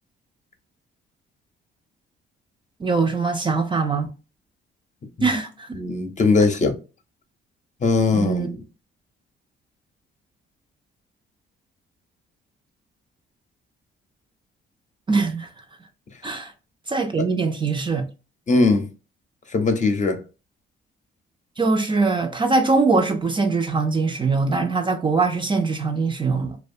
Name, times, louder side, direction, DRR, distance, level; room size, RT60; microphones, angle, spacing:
voice 1, 2.8-4.1 5.2-5.7 8.1-8.5 15.1-15.5 16.2-16.5 16.9-18.1 21.6-26.6, right 4 dB, 25° right, 0.4 m, -22 dB
voice 2, 5.7-6.7 7.8-8.5 17.2-17.3 18.5-18.9 19.5-20.2, left 3 dB, 40° left, 0.6 m, -20 dB
2.6 x 2.2 x 2.5 m
cardioid pair, 90°, 20 cm